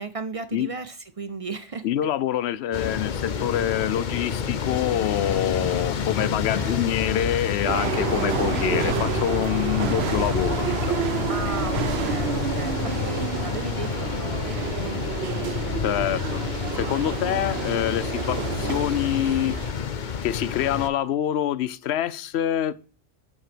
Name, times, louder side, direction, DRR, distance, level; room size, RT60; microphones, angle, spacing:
voice 1, 0.0-1.8 6.2-6.9 11.3-15.6, right 4 dB, 40° right, 0.6 m, -36 dB
voice 2, 1.8-11.0 15.8-16.4 16.7-19.7 20.2-22.7, left 11 dB, 90° left, 0.9 m, -26 dB
sound 1, 2.7-20.9, left 7 dB, 50° left, 0.8 m, -29 dB
sound 2, 7.6-19.7, right 10 dB, 85° right, 0.9 m, -30 dB
7.5 x 5.7 x 6.0 m
omnidirectional pair, 1.1 m